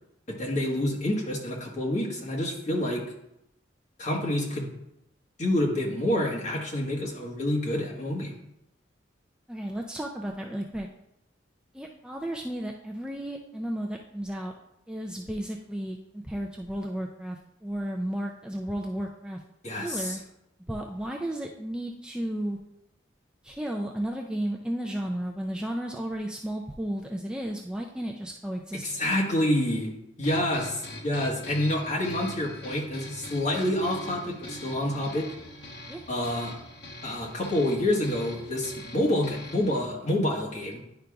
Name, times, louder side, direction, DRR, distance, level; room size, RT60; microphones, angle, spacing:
voice 1, 0.3-3.0 4.0-4.7 5.4-8.3 19.6-20.2 28.8-29.9 30.2-35.3 36.1-36.5 37.0-40.8, left 1 dB, 40° left, -2 dB, 1.3 m, -28 dB
voice 2, 9.5-10.9 11.7-14.5 14.9-19.4 19.8-20.2 20.7-22.6 23.4-28.8 35.9-36.0, right 1 dB, 5° right, 0 dB, 0.3 m, -33 dB
sound 1, 30.2-39.8, left 1 dB, 60° left, 1.1 m, -43 dB
10.5 x 4.9 x 2.3 m, 0.83 s
head